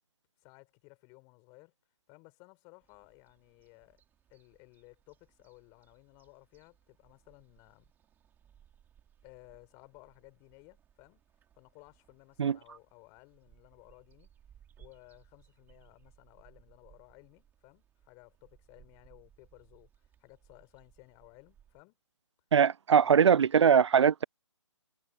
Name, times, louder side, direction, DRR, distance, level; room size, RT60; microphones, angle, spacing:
voice 1, 0.4-1.7 2.1-4.0 4.3-7.9 9.2-11.2 11.6-14.3 14.8-19.9 20.2-22.0 22.9-23.5, left 30 dB, 20° left, 5.3 m, -58 dB
sound 1, 2.8-21.8, right 9 dB, 10° right, 4.0 m, -64 dB
voice 2, 22.5-24.2, right 7 dB, 60° right, 0.4 m, -22 dB
figure-of-eight pair, 145°, 16 cm